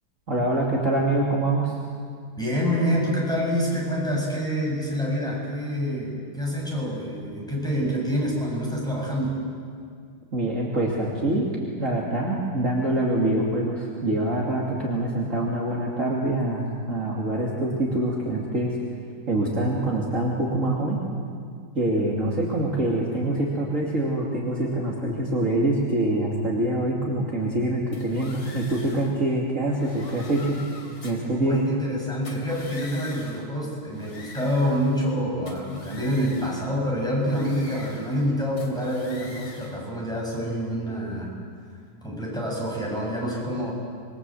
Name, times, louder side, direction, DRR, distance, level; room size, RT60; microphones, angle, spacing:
voice 1, 0.3-1.8 10.3-11.5 11.8-18.7 19.3-21.0 21.7-30.6 31.0-31.6, right 1 dB, 40° right, -4 dB, 3.0 m, -25 dB
voice 2, 2.4-9.4 31.5-41.3 42.0-43.7, equal, ahead, -4 dB, 7.7 m, -27 dB
sound 1, 27.9-29.2 29.7-31.3 32.1-33.5 33.9-35.2 35.5-36.7 37.2-38.3 38.6-39.8, left 3 dB, 75° left, 3.8 m, -45 dB
27.0 x 23.0 x 7.9 m, 2.1 s
omnidirectional pair, 2.3 m